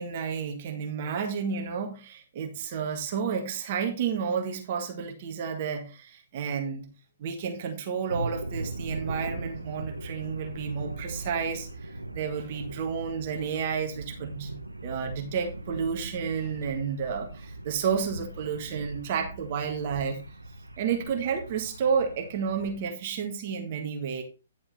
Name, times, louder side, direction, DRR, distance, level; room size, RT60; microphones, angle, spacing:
voice 1, 0.0-6.9 7.2-14.6 14.8-20.2 20.8-24.2, right 6 dB, 45° right, 1.9 m, -31 dB
sound 1, 8.1-22.9, right 2 dB, 90° right, 0.9 m, -39 dB
10.5 x 7.0 x 3.4 m
figure-of-eight pair, 125°, 0 cm